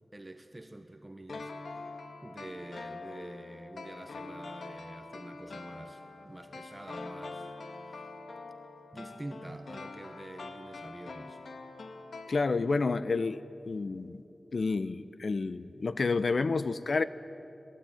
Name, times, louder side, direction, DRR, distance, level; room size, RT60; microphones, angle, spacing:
voice 1, 0.1-8.2 8.9-11.4, right 1 dB, 20° right, 6 dB, 1.2 m, -47 dB
sound 1, 1.3-12.9 13.2-13.3, left 3 dB, 85° left, 1.8 m, -45 dB
voice 2, 12.3-14.2 14.5-17.0, left 4 dB, 60° left, 13 dB, 0.8 m, -30 dB
26.5 x 19.5 x 9.1 m, 2.9 s
wide cardioid pair, 100°, 0 cm